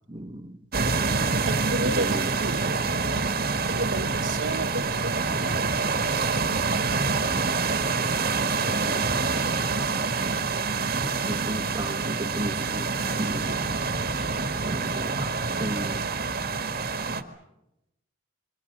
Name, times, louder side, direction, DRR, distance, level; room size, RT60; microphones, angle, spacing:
voice 1, 0.1-0.6 1.8-2.3 2.7-2.8 8.0-9.9 10.9-13.6 14.6-16.0, right 1 dB, 25° right, 1.5 m, -35 dB
sound 1, 0.7-17.2, right 4 dB, 45° right, 1.9 m, -26 dB
voice 2, 1.4-3.3 3.7-5.8, right 2 dB, 65° right, 1.2 m, -33 dB
26.0 x 25.0 x 6.9 m
head